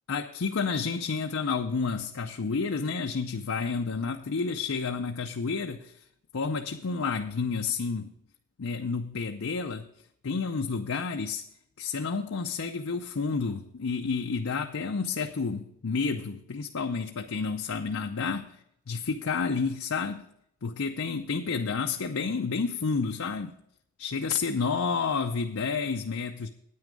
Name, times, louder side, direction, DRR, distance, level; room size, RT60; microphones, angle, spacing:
voice 1, 0.1-5.9 6.3-8.1 8.6-9.9 10.2-11.4 11.8-18.6 18.9-20.2 20.6-23.6 24.0-26.5, left 5 dB, 75° left, 0.6 m, -30 dB
9.5 x 9.3 x 5.2 m
head